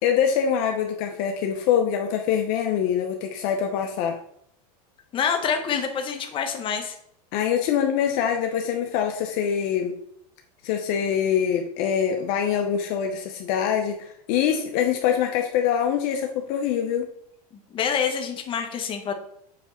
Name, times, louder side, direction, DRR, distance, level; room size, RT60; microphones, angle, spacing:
voice 1, 0.0-4.2 7.3-9.9 10.6-17.0, left 8 dB, 50° left, 4 dB, 0.9 m, -24 dB
voice 2, 5.1-7.0 17.7-19.1, left 7 dB, 25° left, 5 dB, 1.1 m, -26 dB
7.4 x 3.5 x 5.8 m, 0.70 s
supercardioid pair, 140°, 19 cm